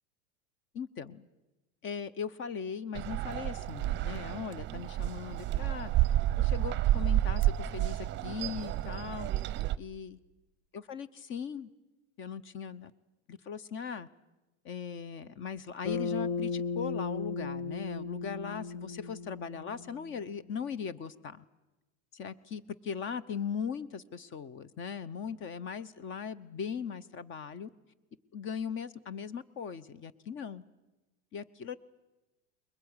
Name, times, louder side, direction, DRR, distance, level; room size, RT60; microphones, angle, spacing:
voice 1, 0.7-1.3 1.8-5.9 6.4-9.3 9.8-10.2 10.7-11.7 12.2-12.9 13.3-14.1 14.6-21.4 22.1-27.7 28.3-30.6 31.3-31.8, left 6 dB, 35° left, 18 dB, 1.0 m, -39 dB
sound 1, 2.9-9.8, right 13 dB, 30° right, 0.7 m, -30 dB
Bass guitar, 15.8-20.3, left 4 dB, 55° left, 1.2 m, -36 dB
21.5 x 21.0 x 9.8 m, 1.0 s
supercardioid pair, 130°, 35 cm